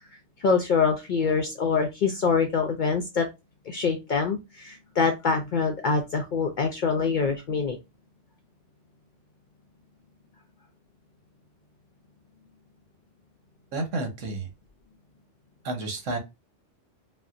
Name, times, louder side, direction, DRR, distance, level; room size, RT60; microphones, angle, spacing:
voice 1, 0.4-3.3 3.7-7.8, left 5 dB, 65° left, 4 dB, 0.5 m, -25 dB
voice 2, 13.7-14.5 15.6-16.2, right 2 dB, 90° right, 4 dB, 1.3 m, -30 dB
4.1 x 2.1 x 2.5 m, 0.24 s
omnidirectional pair, 1.3 m